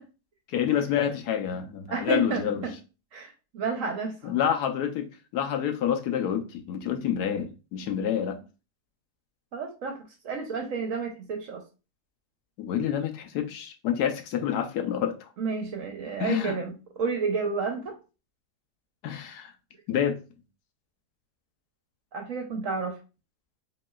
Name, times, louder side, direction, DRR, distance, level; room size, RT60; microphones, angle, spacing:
voice 1, 0.5-2.7 4.2-8.4 12.6-15.3 16.2-16.6 19.0-19.5 19.9-20.2, left 9 dB, 75° left, 1.1 m, -28 dB
voice 2, 1.9-2.7 3.1-4.4 9.5-10.0 10.2-11.6 15.4-17.9 22.1-23.0, right 4 dB, 65° right, 0.9 m, -31 dB
5.1 x 3.0 x 2.3 m
omnidirectional pair, 1.8 m